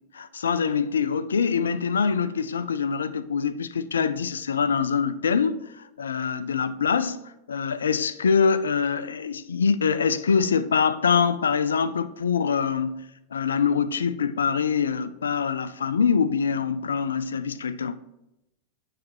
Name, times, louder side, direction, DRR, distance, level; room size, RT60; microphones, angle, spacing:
voice 1, 0.1-13.0 13.3-18.0, left 6 dB, 70° left, 0.3 m, -24 dB
9.3 x 3.2 x 4.4 m
figure-of-eight pair, 90°, 0 cm